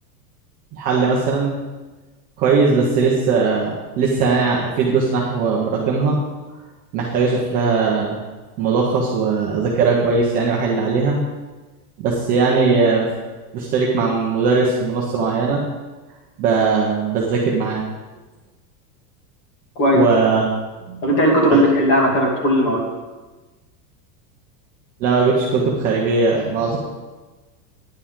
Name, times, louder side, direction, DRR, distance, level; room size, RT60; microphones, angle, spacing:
voice 1, 0.7-1.6 2.4-6.2 6.9-8.2 8.6-11.2 12.0-13.1 13.5-15.6 16.4-17.8 19.9-20.5 20.9-21.1 21.5-21.6 25.0-26.8, right 4 dB, 20° right, -4 dB, 0.6 m, -19 dB
voice 2, 19.8-20.1 21.0-22.8, equal, 45° left, -2 dB, 2.8 m, -16 dB
9.9 x 9.7 x 3.6 m, 1.2 s
supercardioid pair, 180°, 48 cm